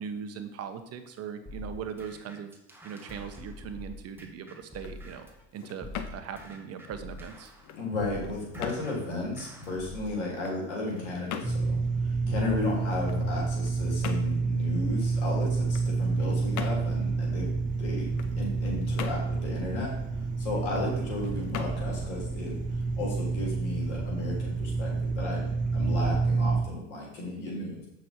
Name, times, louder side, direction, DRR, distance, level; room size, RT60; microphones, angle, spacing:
voice 1, 0.0-2.5 2.8-5.3 5.5-7.5, right 7 dB, 45° right, 8 dB, 1.3 m, -39 dB
sound 1, 1.5-5.4 5.8-10.2, left 1 dB, 5° right, 1.8 m, -46 dB
sound 2, 4.6-23.5, left 9 dB, 60° left, 1.1 m, -44 dB
voice 2, 7.8-17.5 17.8-18.1 18.4-25.4 25.7-27.9, left 2 dB, 90° left, -2 dB, 3.5 m, -34 dB
sound 3, 11.4-26.6, right 4 dB, 20° right, 1.6 m, -29 dB
8.1 x 6.4 x 4.5 m, 0.88 s
supercardioid pair, 90°, 34 cm